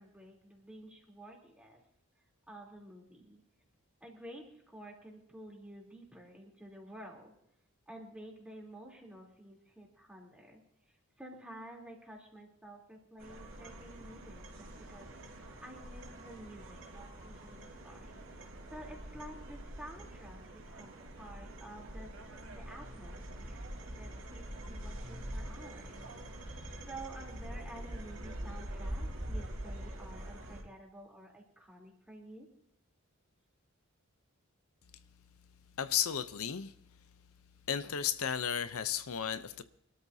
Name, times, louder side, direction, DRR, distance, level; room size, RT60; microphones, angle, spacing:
voice 1, 0.0-1.8 2.5-3.4 4.0-7.4 7.9-10.6 10.9-26.0 26.9-32.5, right 1 dB, 5° right, 3.3 m, -51 dB
sound 1, 13.2-30.6, right 1 dB, 65° right, 3.7 m, -44 dB
voice 2, 35.8-36.7 37.7-39.6, left 8 dB, 75° left, 0.7 m, -33 dB
24.5 x 13.0 x 2.8 m
head